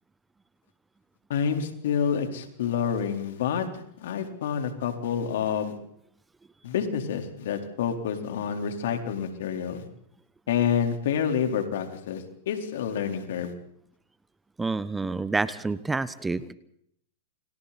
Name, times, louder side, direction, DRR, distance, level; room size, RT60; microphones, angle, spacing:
voice 1, 1.3-5.7 6.6-9.9 10.5-13.5, left 7 dB, 70° left, 5 dB, 4.1 m, -28 dB
voice 2, 14.6-16.5, right 3 dB, 10° right, 15 dB, 1.2 m, -28 dB
29.5 x 25.5 x 4.3 m, 0.70 s
hypercardioid pair, 115°, 0 cm